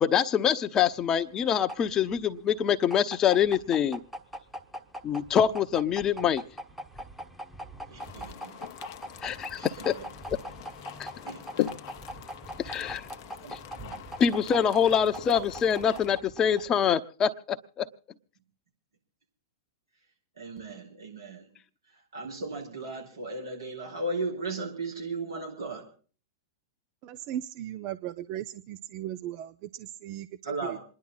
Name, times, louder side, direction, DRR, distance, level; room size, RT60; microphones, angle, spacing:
voice 1, 0.0-4.0 5.0-6.4 9.2-9.9 11.0-11.1 12.6-13.0 13.5-13.6 14.2-17.9, left 8 dB, 30° left, 9 dB, 1.0 m, -25 dB
sound 1, 0.9-17.0, equal, 5° right, 1.2 m, -42 dB
voice 2, 7.9-8.6 9.6-10.1 10.8-11.7 12.6-13.0 13.4-13.5 13.8-14.0 20.4-21.5 22.1-25.9 30.4-30.8, right 2 dB, 90° right, 0 dB, 5.3 m, -37 dB
sound 2, 8.0-16.1, left 13 dB, 55° left, 0.9 m, -40 dB
voice 3, 27.0-30.8, right 12 dB, 45° right, 12 dB, 0.6 m, -37 dB
27.0 x 11.0 x 4.0 m, 0.39 s
hypercardioid pair, 105°, 2 cm